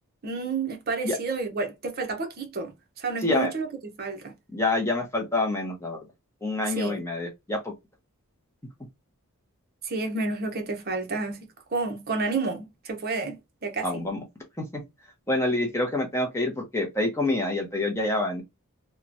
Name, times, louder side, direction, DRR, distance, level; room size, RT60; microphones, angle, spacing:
voice 1, 0.2-2.7 3.0-3.7 4.0-4.3 6.7-7.0 9.8-14.0, right 3 dB, 45° right, 0.6 m, -30 dB
voice 2, 4.5-6.0 6.4-7.7 13.8-14.2 15.3-18.4, left 2 dB, 10° left, 0.6 m, -27 dB
2.9 x 2.1 x 2.5 m
head